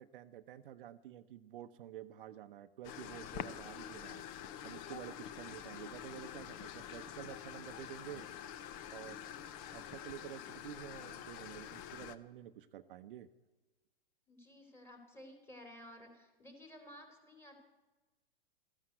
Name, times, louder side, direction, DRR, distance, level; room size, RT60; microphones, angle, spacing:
voice 1, 0.0-4.2 4.6-8.3 8.9-9.3 9.7-13.3, right 11 dB, 60° right, 9 dB, 0.7 m, -50 dB
sound 1, 2.8-12.2, left 10 dB, 30° left, 0.7 m, -47 dB
voice 2, 14.3-17.5, left 1 dB, 10° left, 3 dB, 3.0 m, -54 dB
14.0 x 11.0 x 7.7 m, 1.2 s
hypercardioid pair, 125°, 30 cm